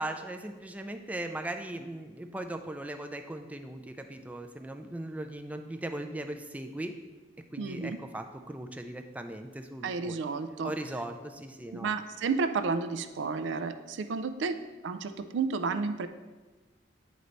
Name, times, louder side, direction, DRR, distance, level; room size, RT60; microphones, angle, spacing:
voice 1, 0.0-6.9 7.5-10.2 10.6-11.9, right 1 dB, 10° right, 6 dB, 0.3 m, -38 dB
voice 2, 7.6-8.0 9.8-10.7 11.7-14.6 14.8-16.1, right 4 dB, 75° right, 9 dB, 0.4 m, -31 dB
9.3 x 3.2 x 3.9 m, 1.2 s
head